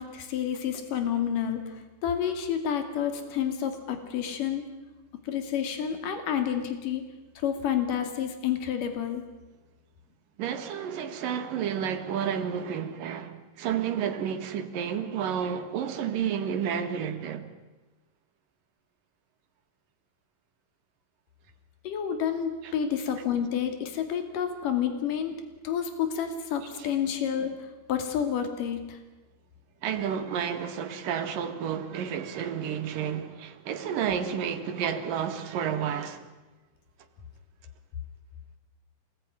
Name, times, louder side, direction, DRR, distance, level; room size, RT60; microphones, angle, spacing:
voice 1, 0.0-4.6 5.3-7.0 7.4-9.2 21.8-25.3 25.6-29.0, left 8 dB, 75° left, 3.9 m, -29 dB
voice 2, 10.4-17.5 22.6-22.7 26.8-26.9 29.8-36.2, right 8 dB, 80° right, 3.4 m, -31 dB
26.5 x 20.0 x 9.8 m
omnidirectional pair, 3.8 m